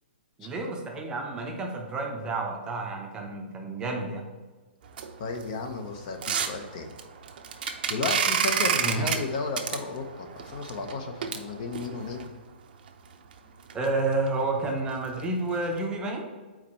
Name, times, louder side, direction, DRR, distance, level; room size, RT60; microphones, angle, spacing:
voice 1, 0.4-4.3 8.6-9.2 13.7-16.3, right 2 dB, 15° right, 1 dB, 0.7 m, -30 dB
sound 1, 4.8-12.3 12.9-13.0 13.3-13.4 13.7-13.8 14.1-14.3 14.7-14.9 15.2-15.3 15.8-15.9, right 7 dB, 55° right, 0.7 m, -30 dB
voice 2, 5.2-6.9 7.9-12.3, left 4 dB, 45° left, 5 dB, 0.8 m, -33 dB
4.8 x 4.4 x 5.5 m, 1.3 s
hypercardioid pair, 150°, 6 cm